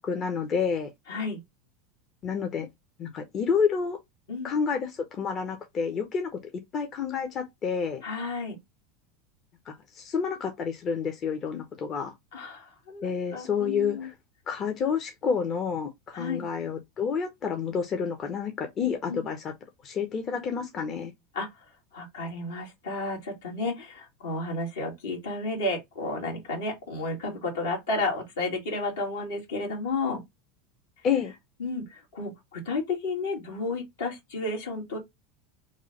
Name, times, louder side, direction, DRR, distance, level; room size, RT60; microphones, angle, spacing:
voice 1, 0.0-0.9 2.2-2.7 3.0-4.0 4.4-6.3 6.7-8.0 9.7-12.1 13.0-14.1 14.5-19.5 19.8-21.1 31.0-31.3, left 6 dB, 40° left, 0.7 m, -29 dB
voice 2, 1.1-1.4 4.3-4.5 8.0-8.5 12.3-14.1 16.1-16.4 19.1-19.2 21.3-21.5 21.9-30.2 31.6-35.0, left 2 dB, 80° left, 1.7 m, -32 dB
3.1 x 2.3 x 3.8 m
hypercardioid pair, 95°, 0 cm